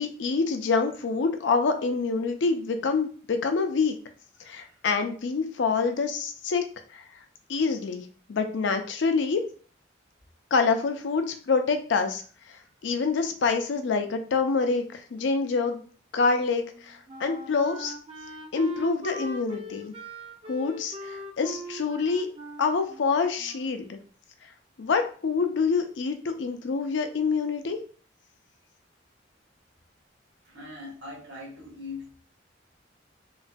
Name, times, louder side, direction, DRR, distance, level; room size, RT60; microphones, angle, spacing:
voice 1, 0.0-4.0 4.4-6.6 6.9-7.1 7.5-9.4 10.5-12.2 12.5-15.8 16.1-17.9 18.5-19.9 20.5-22.3 22.6-24.0 24.8-27.8, left 4 dB, 70° left, 6 dB, 0.4 m, -26 dB
Wind instrument woodwind instrument, 16.6-23.9, right 1 dB, 30° right, 0.4 m, -41 dB
voice 2, 30.4-32.2, left 3 dB, 70° right, -4 dB, 1.4 m, -41 dB
3.1 x 2.2 x 2.5 m, 0.41 s
head